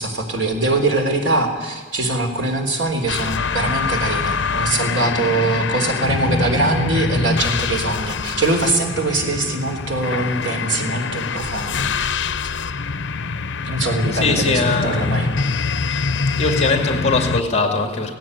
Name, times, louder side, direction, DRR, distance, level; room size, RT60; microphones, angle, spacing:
voice 1, 0.0-12.1 13.7-15.3, right 2 dB, 70° right, 4 dB, 3.7 m, -22 dB
sound 1, 3.1-17.4, left 4 dB, 70° left, 0.8 m, -24 dB
voice 2, 14.1-15.3 15.7-16.0 16.4-18.1, left 3 dB, 35° left, 5 dB, 2.3 m, -21 dB
17.5 x 17.0 x 9.7 m, 1.4 s
head